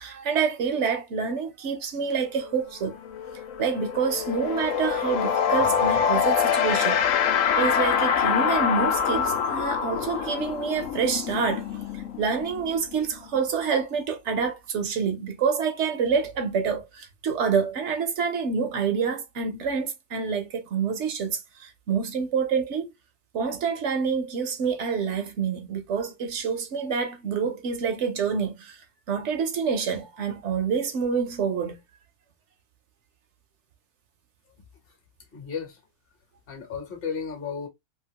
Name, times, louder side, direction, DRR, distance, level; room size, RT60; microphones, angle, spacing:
voice 1, 0.0-3.0 3.6-7.0 7.6-11.7 11.9-22.9 23.3-28.8 29.1-31.8, right 6 dB, 70° right, 1.0 m, -27 dB
sound 1, 2.4-2.5 2.8-13.4, left 7 dB, 85° left, 1.0 m, -25 dB
voice 2, 35.3-35.8 36.5-37.7, left 6 dB, 50° left, 1.1 m, -34 dB
2.9 x 2.5 x 2.8 m
omnidirectional pair, 1.3 m